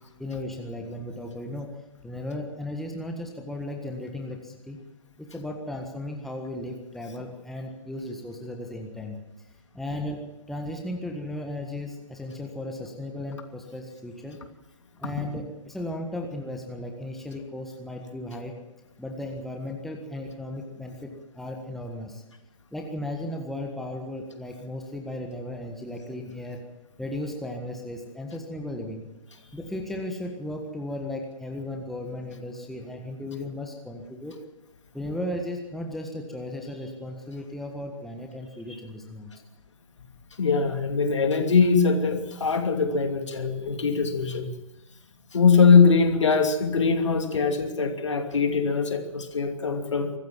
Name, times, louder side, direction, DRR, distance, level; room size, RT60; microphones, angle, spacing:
voice 1, 0.2-4.8 5.2-9.5 9.7-14.4 15.0-18.5 19.0-22.2 22.7-26.6 27.0-29.0 29.5-34.4 34.9-39.3, left 1 dB, ahead, 2 dB, 1.6 m, -35 dB
voice 2, 40.4-44.5 45.3-50.1, left 5 dB, 60° left, 6 dB, 2.7 m, -22 dB
24.0 x 15.0 x 7.4 m, 1.0 s
figure-of-eight pair, 130°, 17 cm